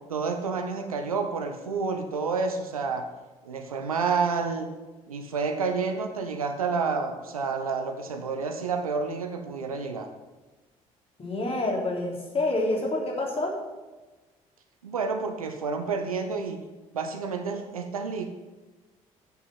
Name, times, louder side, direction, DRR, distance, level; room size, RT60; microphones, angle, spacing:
voice 1, 0.1-3.1 3.4-4.7 5.1-10.1 14.8-16.6 16.9-18.3, right 4 dB, 80° right, 6 dB, 0.9 m, -29 dB
voice 2, 11.2-13.6, left 2 dB, 35° left, -1 dB, 3.2 m, -27 dB
8.3 x 6.9 x 7.8 m, 1.2 s
figure-of-eight pair, 50°, 18 cm